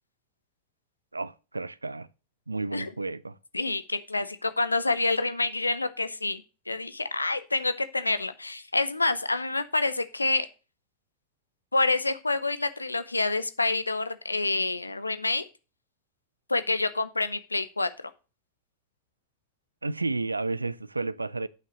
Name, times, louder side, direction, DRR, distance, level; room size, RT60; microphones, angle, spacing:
voice 1, 1.1-2.1 2.5-3.4 19.8-21.5, right 3 dB, 80° right, 0.4 m, -31 dB
voice 2, 3.5-10.5 11.7-15.4 16.5-18.1, left 3 dB, 80° left, 0.7 m, -27 dB
9.2 x 5.7 x 5.1 m
figure-of-eight pair, 90°, 0 cm